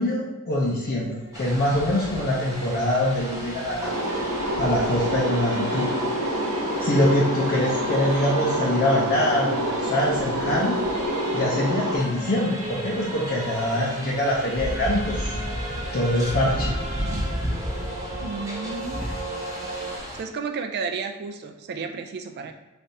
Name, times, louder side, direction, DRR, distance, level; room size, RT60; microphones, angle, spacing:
voice 1, 0.0-4.0 4.5-5.9 6.8-10.8 11.3-15.2 15.9-16.8 19.0-19.1, left 1 dB, 45° left, -5 dB, 0.6 m, -24 dB
Singing / Musical instrument, 0.6-20.0, right 1 dB, 35° right, 1.1 m, -37 dB
sound 1, 1.3-20.2, equal, 15° right, 0.6 m, -35 dB
sound 2, 3.8-12.0, equal, 80° right, 0.6 m, -27 dB
voice 2, 18.2-19.1 20.2-22.5, right 5 dB, 50° right, 6 dB, 0.3 m, -32 dB
3.4 x 3.2 x 2.7 m, 1.1 s
head